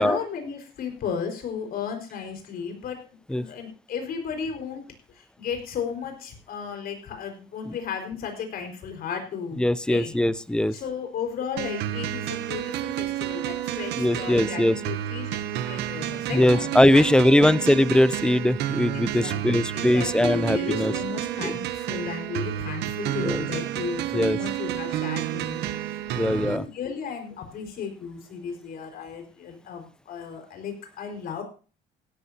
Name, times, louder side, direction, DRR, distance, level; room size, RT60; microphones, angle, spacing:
voice 1, 0.0-4.8 5.1-9.6 9.8-10.1 10.7-17.1 17.4-17.5 18.9-25.7 26.1-31.4, left 6 dB, 65° left, 4 dB, 4.9 m, -34 dB
voice 2, 9.6-10.7 14.0-14.8 16.3-20.9 21.4-21.5 23.2-23.4 24.1-24.4 26.2-26.6, left 1 dB, 5° left, 17 dB, 0.5 m, -21 dB
sound 1, 11.6-26.6, right 12 dB, 85° right, 1.0 m, -30 dB
16.5 x 12.5 x 2.8 m, 0.37 s
cardioid pair, 110°, 17 cm